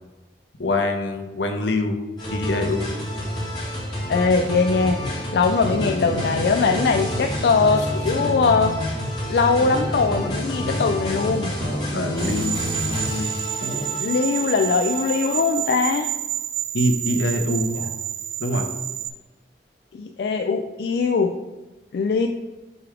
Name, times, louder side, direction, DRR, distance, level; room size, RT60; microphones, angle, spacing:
voice 1, 0.6-2.0 2.3-3.0 5.8-6.1 11.9-13.3 16.7-18.0 18.4-18.7, left 1 dB, 85° left, 4 dB, 0.8 m, -25 dB
sound 1, 2.2-15.7, equal, 25° left, 1.9 m, -30 dB
voice 2, 4.1-5.0 5.3-8.8 9.3-11.5 14.0-16.1 19.9-21.3 21.9-22.3, left 4 dB, 65° left, 6 dB, 0.3 m, -21 dB
sound 2, 4.8-5.1 5.6-9.1 9.6-13.1 13.6-13.8, equal, 55° right, 1.2 m, -31 dB
sound 3, 12.2-19.1, right 12 dB, 30° right, 0.3 m, -29 dB
6.9 x 3.4 x 4.8 m, 1.1 s
head